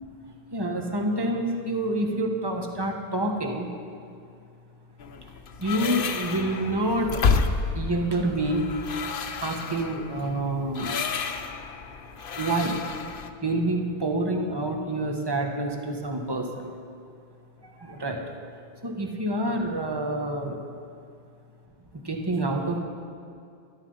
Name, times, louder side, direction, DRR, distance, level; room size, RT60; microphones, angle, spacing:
voice 1, 0.5-3.7 5.2-5.3 5.6-7.2 7.7-8.6 9.4-11.2 12.4-12.8 13.4-16.7 17.6-18.2 18.8-20.6 22.0-22.8, right 1 dB, 25° right, 2 dB, 1.3 m, -27 dB
sound 1, 5.0-13.3, left 5 dB, 60° left, 0.9 m, -30 dB
13.5 x 12.0 x 5.5 m, 2.4 s
omnidirectional pair, 1.0 m